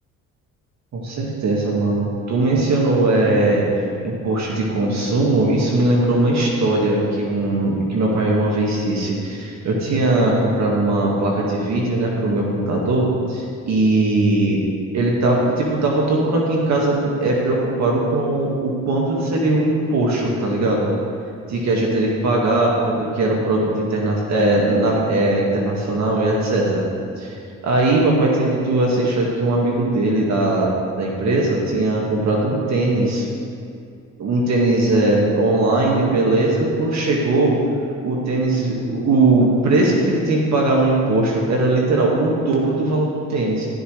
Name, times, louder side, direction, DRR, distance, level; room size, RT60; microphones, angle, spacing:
voice 1, 0.9-3.7 4.0-14.6 14.9-20.9 21.5-26.8 27.2-27.4 27.6-30.7 31.0-33.3 34.2-37.6 38.0-43.7, right 2 dB, 65° right, -2 dB, 1.9 m, -19 dB
12.5 x 12.0 x 3.3 m, 2.4 s
cardioid pair, 90°, 30 cm